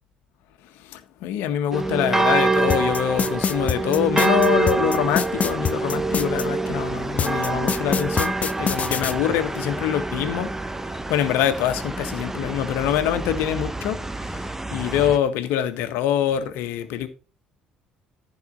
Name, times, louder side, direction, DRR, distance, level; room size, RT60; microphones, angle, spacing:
voice 1, 0.8-10.5 11.1-17.1, left 10 dB, 65° left, 1.6 m, -25 dB
sound 1, 1.7-15.2, right 3 dB, 10° right, 1.0 m, -26 dB
sound 2, 2.7-6.4 7.2-9.1, left 6 dB, 35° left, 0.8 m, -24 dB
14.0 x 5.4 x 5.3 m
figure-of-eight pair, 55°, 4 cm